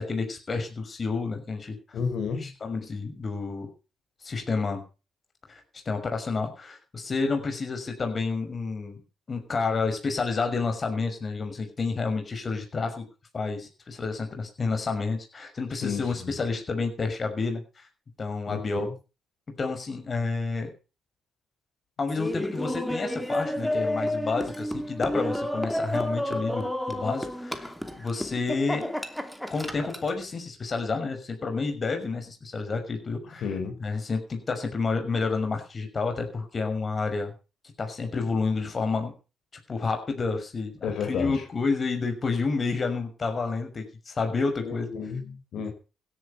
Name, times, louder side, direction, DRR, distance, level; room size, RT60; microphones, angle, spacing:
voice 1, 0.0-1.8 2.4-3.7 4.2-4.8 5.5-5.6 5.9-9.0 9.3-13.1 13.3-17.9 18.2-18.9 19.5-20.7 22.0-28.8 29.5-33.5 33.8-37.3 37.8-39.1 39.7-44.9 45.5-45.7, left 4 dB, 35° left, 6.0 m, -30 dB
voice 2, 1.9-2.5 15.8-16.3 18.5-18.9 33.4-33.8 40.8-41.4 44.6-45.7, left 6 dB, 70° left, 5.0 m, -32 dB
Laughter, 22.1-30.2, left 1 dB, 5° left, 2.7 m, -31 dB
16.5 x 11.0 x 5.8 m
cardioid pair, 90°, 0 cm